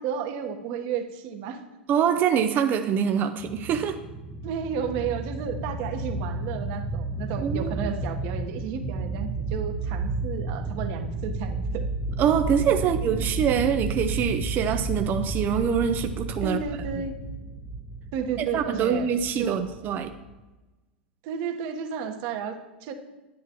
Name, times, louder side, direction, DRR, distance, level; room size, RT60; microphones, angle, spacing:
voice 1, 0.0-1.6 4.4-11.8 16.4-17.1 18.1-19.1 19.3-19.6 21.2-22.9, right 7 dB, 55° right, 6 dB, 1.3 m, -32 dB
voice 2, 1.9-4.0 7.4-7.7 12.2-16.6 18.5-20.1, right 8 dB, 35° right, 7 dB, 0.6 m, -24 dB
sound 1, 3.4-20.4, right 2 dB, 5° right, 0.8 m, -32 dB
10.0 x 9.4 x 3.1 m, 1.1 s
hypercardioid pair, 100°, 6 cm